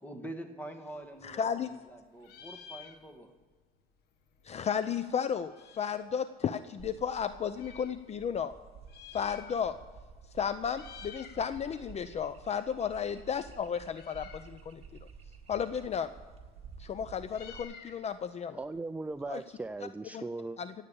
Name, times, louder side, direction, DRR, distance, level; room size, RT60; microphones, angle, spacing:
voice 1, 0.0-3.3, right 1 dB, 10° left, 1.9 m, -45 dB
Meow, 0.9-1.9 2.2-3.4 3.7-3.8 4.0-6.1 6.8-8.0 8.7-9.9 10.2-10.4 10.7-11.4 11.8-19.7, left 7 dB, 75° left, 1.5 m, -53 dB
voice 2, 1.2-1.7 4.4-8.5 9.1-9.8 10.3-14.8 15.5-16.1 16.8-18.6 19.3-19.4 20.1-20.2 20.6-20.7, left 7 dB, 40° left, 0.6 m, -33 dB
sound 1, 6.8-17.6, right 5 dB, 35° right, 1.8 m, -52 dB
voice 3, 18.6-20.6, right 3 dB, 10° right, 0.4 m, -38 dB
16.5 x 8.2 x 7.0 m
cardioid pair, 110°, 17 cm